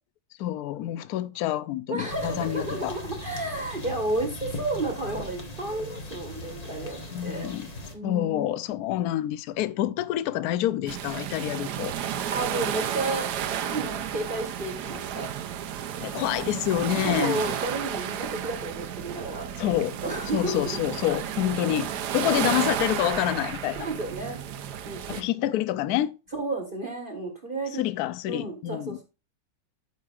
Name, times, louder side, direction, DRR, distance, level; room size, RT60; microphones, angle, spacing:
voice 1, 0.4-3.0 7.1-7.7 8.0-11.9 16.0-17.4 19.6-20.0 20.3-23.9 25.1-26.2 27.7-29.0, left 13 dB, 70° left, 1.0 m, -27 dB
voice 2, 1.9-7.5 7.9-8.5 12.3-13.3 13.6-15.3 17.0-19.7 20.0-20.7 22.2-22.3 23.8-24.4 24.8-25.2 26.3-27.8 28.3-29.0, right 2 dB, 30° right, 1.5 m, -32 dB
sound 1, 2.1-7.9, left 1 dB, 25° left, 1.3 m, -39 dB
sound 2, 10.9-25.2, right 9 dB, 70° right, 1.3 m, -32 dB
13.5 x 5.3 x 2.4 m
omnidirectional pair, 1.9 m